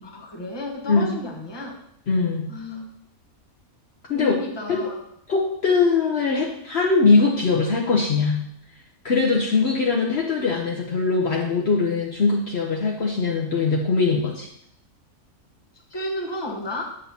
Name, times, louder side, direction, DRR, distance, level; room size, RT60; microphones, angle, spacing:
voice 1, 0.0-1.8 2.5-2.9 4.1-5.0 15.9-16.8, left 1 dB, 20° left, 0 dB, 0.9 m, -32 dB
voice 2, 2.1-2.5 4.1-4.3 4.7-4.8 5.3-8.4 9.0-14.5, left 4 dB, 55° left, -2 dB, 0.9 m, -21 dB
8.8 x 6.2 x 2.7 m, 0.73 s
omnidirectional pair, 1.5 m